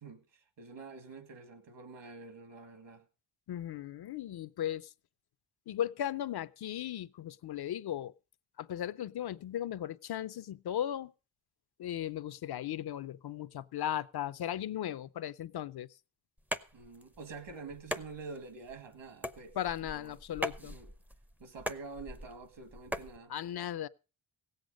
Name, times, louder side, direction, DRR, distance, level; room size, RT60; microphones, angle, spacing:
voice 1, 0.0-3.0 16.7-20.2 20.6-20.9 21.4-23.3, right 4 dB, 65° right, 2.0 m, -47 dB
voice 2, 3.5-4.9 5.7-8.1 8.6-11.1 11.8-15.9 19.6-20.8 23.3-23.9, left 11 dB, 55° left, 0.5 m, -37 dB
sound 1, 16.4-23.2, equal, 5° right, 0.5 m, -41 dB
17.0 x 8.1 x 5.1 m
cardioid pair, 100°, 46 cm